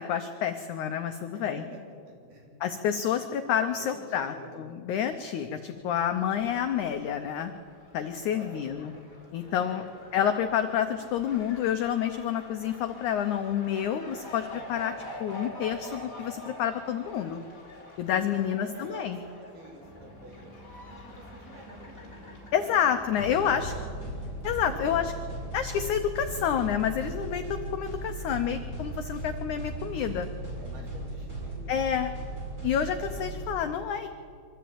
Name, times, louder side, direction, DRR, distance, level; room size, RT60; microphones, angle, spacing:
voice 1, 0.0-1.6 2.6-7.5 7.9-8.9 9.3-9.8 10.1-14.9 15.2-17.4 18.0-19.2 22.5-23.7 24.4-25.1 25.5-30.3 31.7-32.1 32.6-34.1, left 9 dB, 85° left, 7 dB, 1.7 m, -29 dB
voice 2, 1.3-1.8 2.1-2.5 2.9-3.0 3.8-4.6 8.3-8.9 9.4-10.1 18.3-20.5 20.9-22.3 22.6-22.9 23.3-24.2 24.7-25.1 30.6-32.4, right 2 dB, 75° right, -1 dB, 5.4 m, -48 dB
Fowl, 6.0-23.2, left 1 dB, 20° left, 3.3 m, -47 dB
sound 1, 19.8-25.2, left 1 dB, ahead, 4.0 m, -50 dB
sound 2, 23.2-33.4, right 2 dB, 25° right, 5.3 m, -37 dB
24.0 x 13.5 x 8.7 m, 2.3 s
omnidirectional pair, 4.5 m